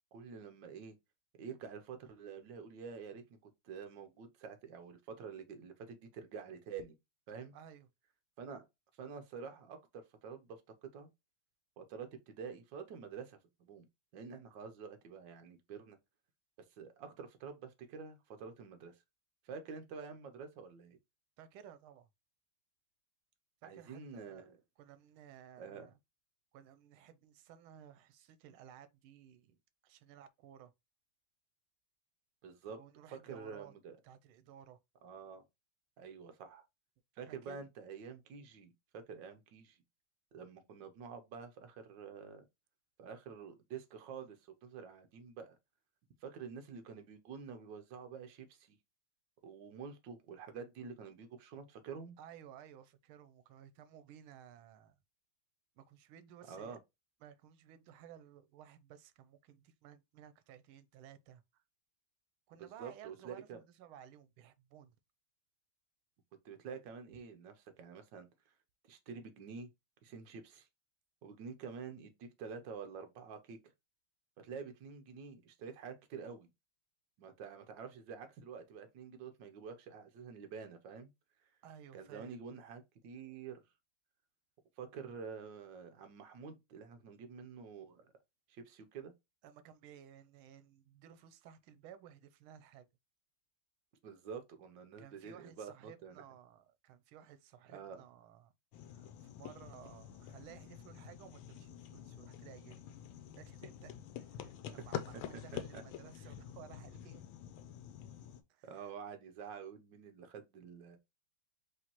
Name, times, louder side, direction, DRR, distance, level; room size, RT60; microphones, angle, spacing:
voice 1, 0.1-0.9 1.4-3.4 3.6-7.0 7.3-7.5 8.4-8.7 9.0-11.1 11.8-13.9 14.1-16.0 16.8-19.0 19.4-21.0 23.6-24.6 25.6-25.9 32.4-32.8 33.1-34.0 35.0-35.4 36.0-36.7 37.2-39.8 40.3-42.4 43.0-45.6 46.2-48.8 49.4-52.2 56.5-56.8 62.6-63.6 66.4-68.3 68.9-69.7 70.0-70.7 71.2-73.6 74.4-76.5 77.2-81.1 81.9-83.6 84.8-88.1 88.5-89.1 94.0-96.2 97.7-98.0 104.8-104.9 105.5-105.8 108.6-111.0, right 6 dB, 70° right, 1.4 m, -48 dB
voice 2, 7.5-7.9 21.4-22.1 23.6-24.5 24.8-26.0 26.5-29.6 29.8-30.7 32.7-33.7 34.0-34.8 37.3-37.7 52.2-55.0 55.8-56.8 57.2-61.6 62.5-64.9 81.6-82.3 89.4-92.9 95.0-98.5 98.9-102.8 103.4-107.2 108.5-108.9, right 9 dB, 90° right, 1.5 m, -56 dB
sound 1, 98.7-108.4, left 10 dB, 85° left, 1.4 m, -47 dB
4.9 x 3.1 x 2.9 m
omnidirectional pair, 2.2 m